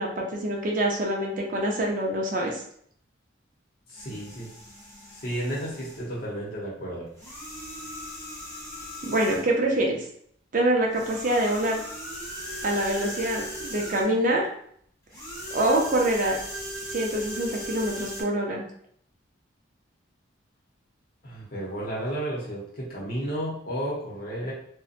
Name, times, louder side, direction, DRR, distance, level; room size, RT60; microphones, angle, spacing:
voice 1, 0.0-2.6 9.0-10.0 10.5-11.8 12.6-14.4 15.5-16.4 16.9-18.6, right 1 dB, 40° right, 0 dB, 0.5 m, -25 dB
voice 2, 3.9-4.5 5.1-7.1 21.2-24.5, right 1 dB, 50° left, -5 dB, 0.8 m, -32 dB
sound 1, 4.0-6.1 7.1-9.6 10.9-14.2 15.1-18.2, equal, 15° left, 0.8 m, -38 dB
2.6 x 2.1 x 2.4 m, 0.65 s
head